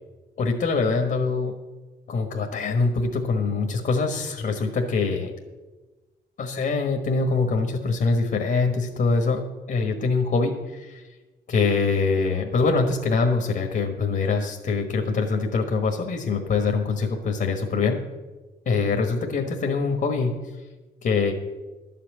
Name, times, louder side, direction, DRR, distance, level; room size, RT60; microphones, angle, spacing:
voice 1, 0.4-1.6 2.1-5.3 6.4-9.4 9.7-11.0 11.5-18.0 18.6-20.3 21.0-21.3, left 4 dB, 50° left, 3 dB, 1.4 m, -24 dB
11.5 x 5.9 x 8.4 m, 1.2 s
cardioid pair, 90°, 20 cm